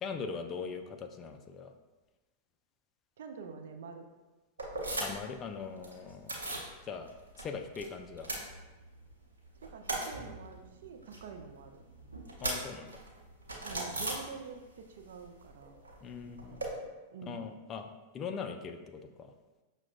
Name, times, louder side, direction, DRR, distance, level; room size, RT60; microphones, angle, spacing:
voice 1, 0.0-1.7 5.0-6.4 6.9-7.1 7.4-8.3 12.4-13.0 16.0-16.6 17.3-19.3, left 5 dB, 30° left, 6 dB, 0.4 m, -41 dB
voice 2, 3.2-4.1 9.6-11.8 13.6-15.7 16.5-17.5, right 5 dB, 65° right, 5 dB, 0.3 m, -47 dB
sound 1, 4.6-5.4 5.6-6.7 7.1-7.8 8.1-9.1 9.4-14.8 15.1-16.7, right 2 dB, 85° right, 0.7 m, -39 dB
5.8 x 2.1 x 2.4 m, 1.2 s
figure-of-eight pair, 95°, 0 cm